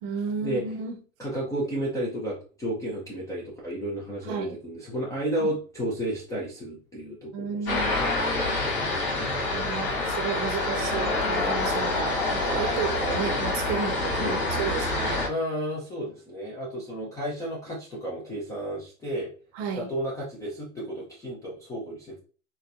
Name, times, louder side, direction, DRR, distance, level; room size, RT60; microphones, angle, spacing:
voice 1, 0.0-1.0 4.3-4.6 5.4-5.5 7.3-8.1 9.5-15.2 19.5-19.9, right 6 dB, 35° right, 0.7 m, -33 dB
voice 2, 1.2-8.1 8.9-9.4 14.2-14.4 15.3-19.3 19.8-22.2, right 1 dB, 10° left, 0.4 m, -32 dB
sound 1, 7.7-15.3, left 2 dB, 85° left, 1.6 m, -27 dB
4.3 x 2.1 x 2.5 m
hypercardioid pair, 120°, 43 cm